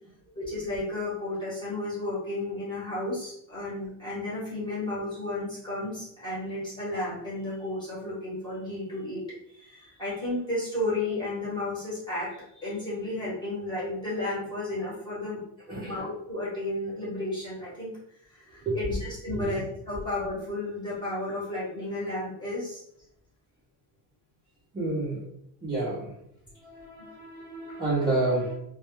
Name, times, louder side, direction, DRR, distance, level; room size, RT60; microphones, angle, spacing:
voice 1, 0.3-9.3 9.5-15.4 15.8-17.9 18.3-22.8, left 2 dB, 10° left, -8 dB, 0.8 m, -33 dB
voice 2, 24.7-25.2 25.6-26.1 26.6-28.5, right 2 dB, 10° right, -11 dB, 0.5 m, -29 dB
2.2 x 2.1 x 3.0 m, 0.74 s
cardioid pair, 180°, 41 cm